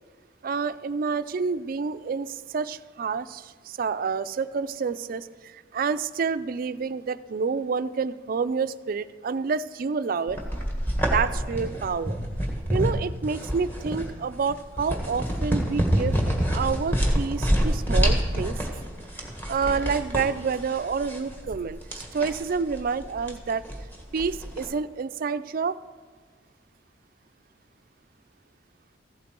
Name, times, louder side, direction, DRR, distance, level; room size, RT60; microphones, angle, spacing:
voice 1, 0.4-10.4 11.0-12.2 12.7-16.1 16.5-18.6 19.2-23.6 24.1-25.8, right 5 dB, 50° right, 14 dB, 0.4 m, -28 dB
sound 1, 10.3-24.7, equal, 10° left, 1.6 m, -27 dB
15.0 x 8.2 x 4.4 m, 1.5 s
head